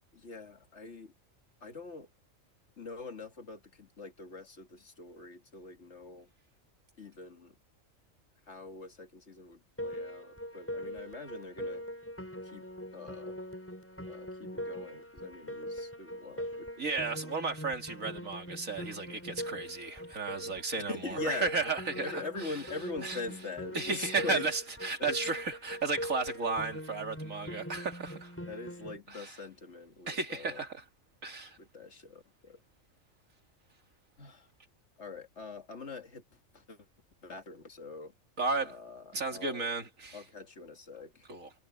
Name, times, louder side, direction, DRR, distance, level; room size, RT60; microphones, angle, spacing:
voice 1, 0.1-1.1 1.6-2.1 2.8-6.3 7.0-7.6 8.5-11.9 12.4-12.7 12.9-13.4 14.1-17.1 20.8-21.5 22.0-24.5 25.0-25.2 28.5-30.7 31.6-32.6 34.2-34.5 35.0-36.9 37.2-38.1 38.6-39.7 40.1-41.3, left 3 dB, 55° left, 2.2 m, -43 dB
Piano, 9.8-29.0, equal, 10° left, 6.4 m, -42 dB
voice 2, 16.8-22.2 23.0-23.2 23.7-28.3 29.1-29.3 30.1-30.8 31.2-31.6 38.4-38.7 39.1-40.2 41.3-41.5, right 3 dB, 80° right, 3.1 m, -34 dB
omnidirectional pair, 1.4 m